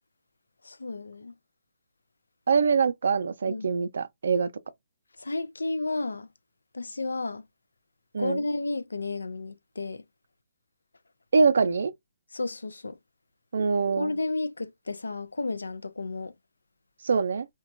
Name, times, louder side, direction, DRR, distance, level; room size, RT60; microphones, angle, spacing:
voice 1, 0.7-1.3 3.5-3.7 5.2-6.3 6.7-7.4 8.2-10.0 12.3-13.0 14.0-16.3, left 3 dB, 90° left, 0.3 m, -32 dB
voice 2, 2.5-4.5 8.1-8.4 11.3-11.9 13.5-14.1 17.0-17.5, right 5 dB, 70° right, 0.4 m, -24 dB
2.9 x 2.2 x 2.4 m
hypercardioid pair, 145°, 0 cm